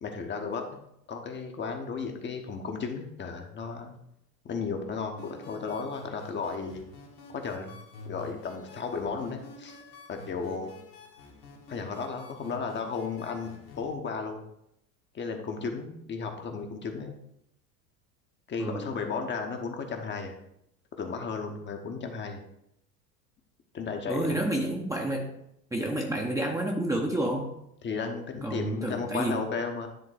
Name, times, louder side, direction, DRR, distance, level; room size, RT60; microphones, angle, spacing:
voice 1, 0.0-3.9 4.4-6.8 7.3-7.8 8.0-9.8 10.1-10.7 11.7-13.5 13.8-14.4 15.1-17.2 18.5-20.4 21.0-22.4 23.7-24.4 27.8-29.9, left 5 dB, 20° left, 4 dB, 0.9 m, -34 dB
sound 1, 5.2-13.9, left 3 dB, 65° left, 1.7 m, -49 dB
voice 2, 18.6-18.9 24.1-25.3 25.7-27.5 28.4-29.4, right 1 dB, 5° right, 0 dB, 0.8 m, -29 dB
10.0 x 3.7 x 4.9 m, 0.79 s
figure-of-eight pair, 75°, 50 cm